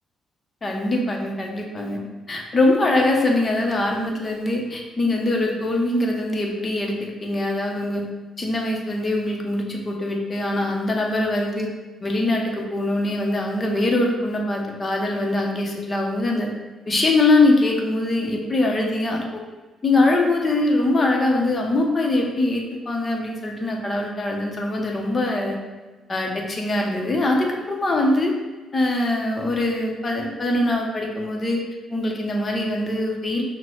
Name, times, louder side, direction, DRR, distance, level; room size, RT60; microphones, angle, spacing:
voice 1, 0.6-8.1 8.4-11.7 12.0-16.5 16.9-19.4 19.8-25.6 26.1-28.3 28.7-31.6 31.9-33.4, left 2 dB, 30° left, 0 dB, 0.8 m, -22 dB
5.9 x 2.2 x 3.1 m, 1.2 s
cardioid pair, 90°, 0 cm